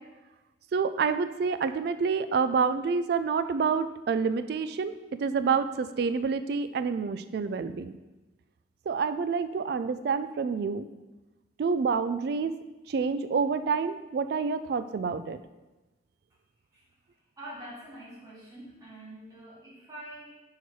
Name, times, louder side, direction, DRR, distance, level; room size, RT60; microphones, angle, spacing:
voice 1, 0.7-4.9 5.2-8.0 8.9-10.9 11.6-12.5 12.9-15.4, right 5 dB, 55° right, 12 dB, 0.3 m, -28 dB
voice 2, 17.4-20.3, right 1 dB, 20° right, -8 dB, 2.3 m, -45 dB
5.6 x 4.5 x 4.6 m, 1.1 s
head